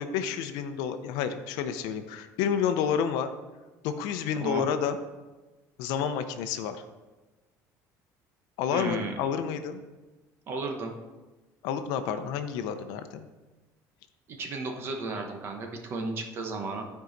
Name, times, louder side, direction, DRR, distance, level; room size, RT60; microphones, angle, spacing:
voice 1, 0.0-3.3 3.8-5.0 5.8-6.8 8.6-9.8 11.6-13.3, left 8 dB, 75° left, 9 dB, 0.7 m, -30 dB
voice 2, 8.7-9.1 10.5-10.9 14.3-16.8, right 3 dB, 35° right, 3 dB, 1.0 m, -34 dB
13.0 x 4.7 x 4.0 m, 1.2 s
cardioid pair, 175°, 7 cm